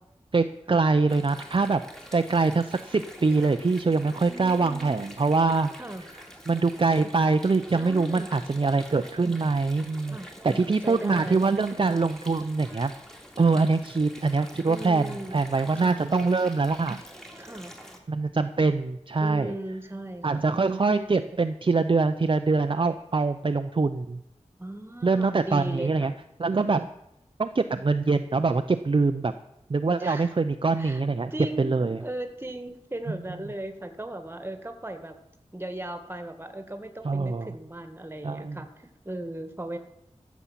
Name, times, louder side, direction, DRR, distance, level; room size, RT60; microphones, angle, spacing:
voice 1, 0.3-1.8 2.1-5.7 6.5-10.2 10.4-12.9 13.4-17.0 18.1-19.5 20.2-24.2 25.0-26.1 26.4-26.9 27.4-29.3 29.7-31.3 31.6-32.0 33.1-33.2 37.0-37.5 38.2-38.6, right 3 dB, 45° right, 8 dB, 0.6 m, -24 dB
Water, 1.1-18.0, equal, 5° left, 2.4 m, -46 dB
voice 2, 4.3-5.1 5.8-6.0 7.7-8.5 10.0-11.4 13.4-13.6 14.6-15.4 15.7-16.0 17.4-17.7 19.2-20.4 24.6-26.2 26.7-27.0 30.0-30.3 30.8-31.0 31.3-35.1 35.5-39.8, right 1 dB, 20° right, 7 dB, 1.7 m, -37 dB
14.0 x 7.2 x 7.4 m, 0.81 s
wide cardioid pair, 75°, 12 cm